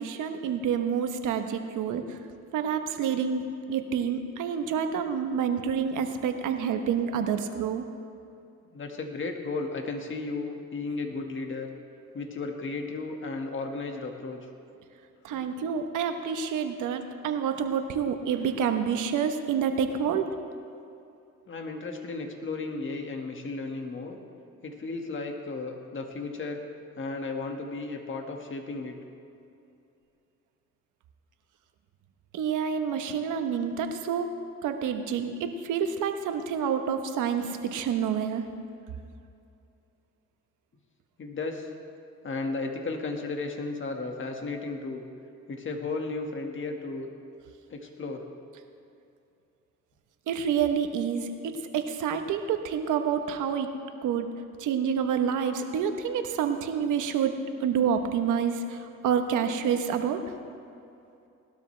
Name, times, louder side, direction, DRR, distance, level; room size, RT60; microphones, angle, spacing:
voice 1, 0.0-2.0 2.5-3.4 3.7-7.8 15.2-20.2 32.3-34.3 34.6-38.4 50.3-53.7 54.0-54.3 54.6-57.3 57.6-58.8 59.0-60.2, right 7 dB, 85° right, 7 dB, 1.1 m, -28 dB
voice 2, 8.7-11.7 12.1-14.5 15.3-15.5 21.5-24.2 24.6-26.6 27.0-29.0 41.2-41.7 42.2-45.0 45.5-47.1 47.7-48.3, left 3 dB, 40° left, 3 dB, 1.8 m, -34 dB
19.0 x 12.5 x 3.3 m, 2.6 s
cardioid pair, 90°, 30 cm